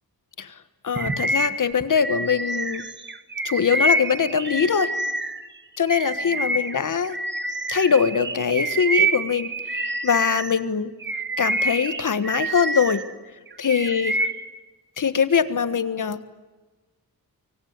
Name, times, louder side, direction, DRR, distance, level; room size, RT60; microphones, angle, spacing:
voice 1, 0.8-2.8 3.4-4.9 5.8-7.2 7.7-10.9 11.4-13.0 13.6-14.1 15.0-16.2, left 6 dB, 55° left, 12 dB, 1.4 m, -22 dB
Bird vocalization bird call bird song, 1.0-5.5 5.9-10.6 11.0-13.1 13.5-14.5, right 2 dB, 30° right, 1.5 m, -27 dB
25.0 x 24.0 x 9.6 m, 1.2 s
wide cardioid pair, 155°, 37 cm